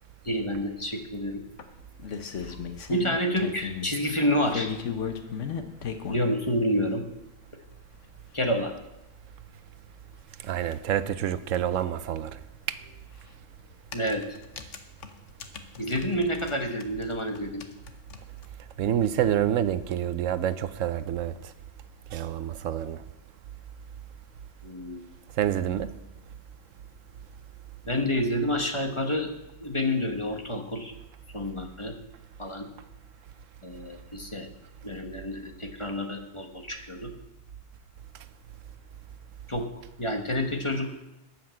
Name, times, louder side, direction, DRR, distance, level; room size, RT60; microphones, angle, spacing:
voice 1, 0.2-1.4 2.4-2.6 2.9-4.7 6.1-7.0 8.3-8.7 13.9-14.2 15.8-17.6 24.6-25.0 27.8-29.3 29.6-30.9 31.3-31.9 32.4-32.7 33.6-34.5 34.8-37.1 39.5-39.7 40.0-40.9, equal, 25° left, 1.1 m, -28 dB
sound 1, 1.6-3.9 4.4-6.3 7.2-7.3 7.7-7.8 8.0-8.1 8.4-8.5 10.5-10.6 10.8-10.9 12.8-13.0 13.7-16.5 16.8-18.5, left 7 dB, 70° left, 1.2 m, -36 dB
voice 2, 10.4-12.4 12.7-12.8 18.8-21.3 22.1-23.0 25.4-25.9, right 10 dB, 90° right, 1.0 m, -27 dB
12.5 x 5.8 x 7.5 m
omnidirectional pair, 1.3 m